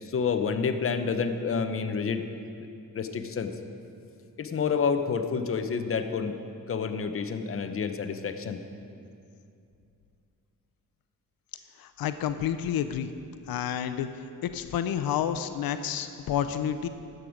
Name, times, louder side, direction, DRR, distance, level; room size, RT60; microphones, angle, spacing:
voice 1, 0.0-2.2 2.9-3.5 4.4-6.4 6.7-8.6, left 5 dB, 40° left, 8 dB, 0.7 m, -29 dB
voice 2, 11.8-13.1 13.5-14.1 14.4-16.9, left 9 dB, 90° left, 10 dB, 0.5 m, -29 dB
13.0 x 7.9 x 5.0 m, 2.5 s
cardioid pair, 100°, 35 cm